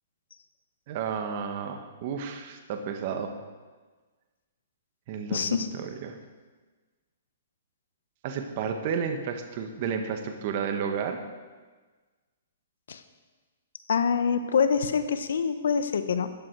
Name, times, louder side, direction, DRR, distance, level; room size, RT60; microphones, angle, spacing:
voice 1, 0.9-3.3 5.1-6.2 8.2-11.2, right 6 dB, 45° right, 5 dB, 1.4 m, -32 dB
voice 2, 5.3-5.7 12.9-13.0 13.9-16.3, left 6 dB, 75° left, 10 dB, 1.1 m, -25 dB
13.5 x 10.5 x 4.8 m, 1.3 s
hypercardioid pair, 145°, 0 cm